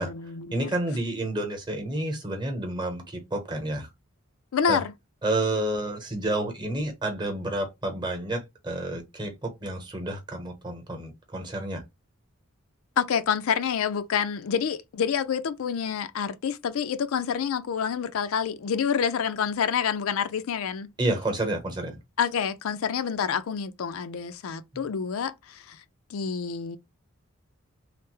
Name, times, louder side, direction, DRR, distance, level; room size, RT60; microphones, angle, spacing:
voice 1, 0.0-0.7 4.5-4.9 13.0-20.9 22.2-25.8 26.1-26.8, left 7 dB, 80° left, 0.4 m, -28 dB
voice 2, 0.5-3.9 4.7-4.8 5.2-11.8 21.0-22.0, right 1 dB, 20° right, 0.9 m, -30 dB
3.3 x 2.0 x 3.0 m
head